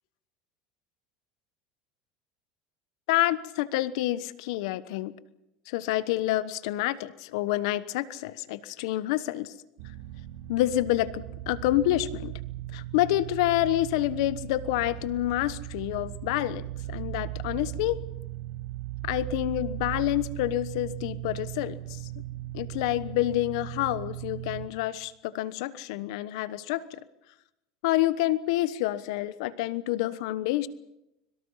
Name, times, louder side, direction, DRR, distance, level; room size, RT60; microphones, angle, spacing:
voice 1, 3.1-5.1 5.7-9.5 10.5-12.3 12.7-18.0 19.0-22.0 22.5-27.0 27.8-30.7, left 15 dB, 80° left, 16 dB, 1.1 m, -28 dB
sound 1, 9.8-24.7, right 15 dB, 75° right, 2.9 m, -38 dB
25.0 x 23.0 x 5.7 m, 0.89 s
supercardioid pair, 125°, 3 cm